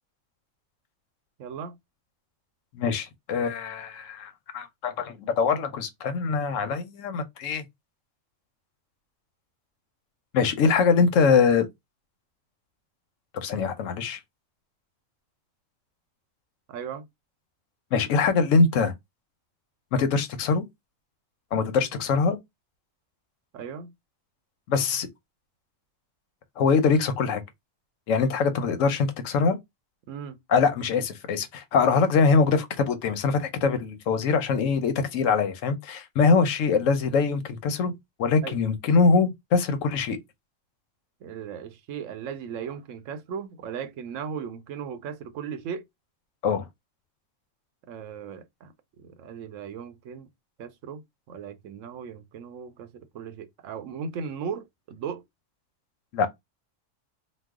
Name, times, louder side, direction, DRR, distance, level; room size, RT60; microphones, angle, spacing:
voice 1, 1.4-1.8 16.7-17.1 23.5-23.9 30.1-30.4 38.4-38.6 41.2-45.8 47.9-48.7 49.0-50.3 50.6-51.0 51.3-55.2, right 7 dB, 80° right, 1.0 m, -37 dB
voice 2, 2.7-7.6 10.3-11.7 13.3-14.2 17.9-18.9 19.9-20.6 21.5-22.4 24.7-25.1 26.6-27.4 28.1-29.6 30.5-37.9 38.2-40.2 46.4-46.7 56.1-56.3, left 5 dB, 80° left, 1.0 m, -23 dB
3.1 x 2.0 x 3.5 m
omnidirectional pair, 1.3 m